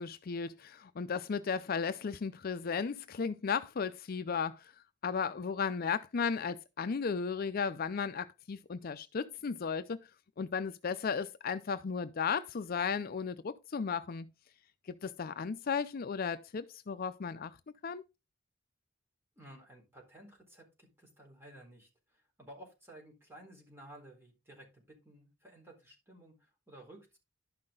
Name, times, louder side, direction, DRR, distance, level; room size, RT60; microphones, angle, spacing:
voice 1, 0.0-4.7 5.0-10.1 10.4-14.3 14.9-17.6 17.8-18.0, left 6 dB, 50° left, 0.5 m, -35 dB
voice 2, 19.4-27.2, right 1 dB, 15° right, 4.1 m, -55 dB
11.5 x 5.8 x 3.8 m
head